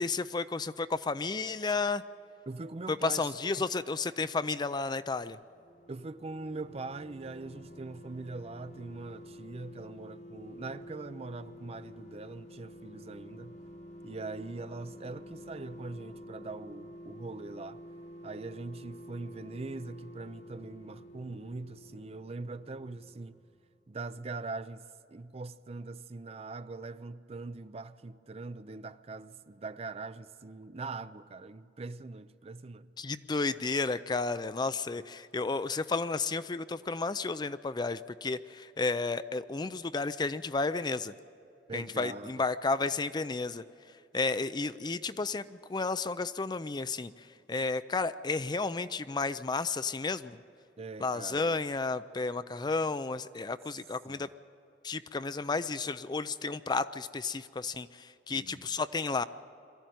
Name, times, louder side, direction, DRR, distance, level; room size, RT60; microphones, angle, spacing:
voice 1, 0.0-2.0 2.9-5.4 33.0-41.1 41.7-43.6 44.1-50.4 51.0-54.3 54.8-59.2, left 3 dB, 25° left, 0.4 m, -32 dB
voice 2, 2.5-3.6 5.9-13.6 14.0-17.8 18.2-23.4 23.9-32.9 41.7-42.4 50.8-51.6 54.1-54.3 58.3-58.7, right 3 dB, 35° right, 0.5 m, -42 dB
sound 1, 5.4-23.8 24.1-24.2, equal, 40° left, 1.1 m, -49 dB
23.0 x 14.0 x 9.2 m
head